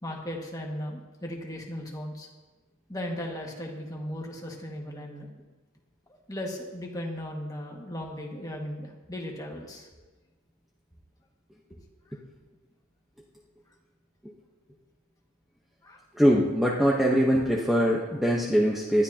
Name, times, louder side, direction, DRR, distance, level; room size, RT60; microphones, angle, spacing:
voice 1, 0.0-2.3 2.9-5.3 6.3-9.9 12.1-12.2 15.8-16.0, left 1 dB, 15° left, -1 dB, 1.8 m, -37 dB
voice 2, 16.1-19.0, equal, ahead, -4 dB, 1.0 m, -22 dB
19.5 x 12.5 x 2.9 m, 1.2 s
head